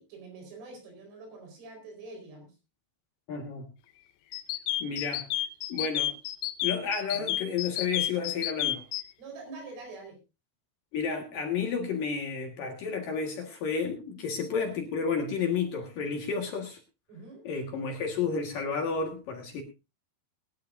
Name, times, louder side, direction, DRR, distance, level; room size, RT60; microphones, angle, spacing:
voice 1, 0.0-2.6 7.1-7.3 9.2-10.2 14.2-14.3 17.1-17.5, right 3 dB, 80° right, 3 dB, 7.1 m, -45 dB
voice 2, 3.3-3.7 4.8-5.2 5.7-6.1 6.6-8.8 10.9-16.8 17.4-19.6, left 5 dB, 55° left, 3 dB, 2.8 m, -31 dB
sound 1, 4.3-9.0, left 13 dB, 80° left, 2.3 m, -30 dB
21.5 x 11.5 x 2.6 m, 0.28 s
omnidirectional pair, 5.5 m